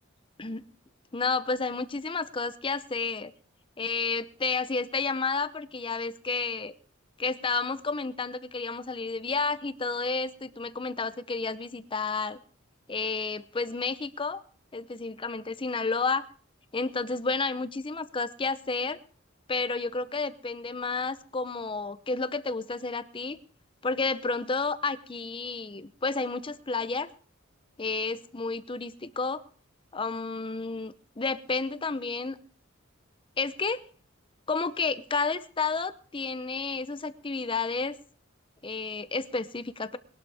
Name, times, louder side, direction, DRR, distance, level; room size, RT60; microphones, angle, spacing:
voice 1, 1.1-3.3 3.8-6.7 7.2-12.4 12.9-14.4 14.7-16.2 16.7-19.0 19.5-23.4 23.8-27.1 27.8-29.4 29.9-32.4 33.4-33.8 34.5-38.0 38.6-40.0, left 4 dB, 25° left, 13 dB, 0.7 m, -31 dB
21.0 x 12.0 x 3.5 m, 0.42 s
head